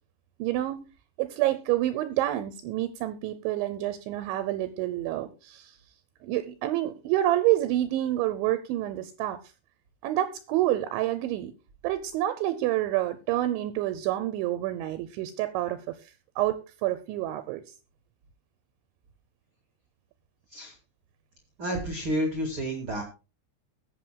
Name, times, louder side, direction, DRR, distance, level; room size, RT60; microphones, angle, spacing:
voice 1, 0.4-0.9 1.2-5.7 6.2-9.4 10.0-11.5 11.8-15.9 16.4-17.6, right 14 dB, 80° right, 12 dB, 2.9 m, -28 dB
voice 2, 21.6-23.0, equal, 55° right, 3 dB, 1.4 m, -30 dB
21.0 x 7.6 x 2.2 m, 0.31 s
omnidirectional pair, 5.6 m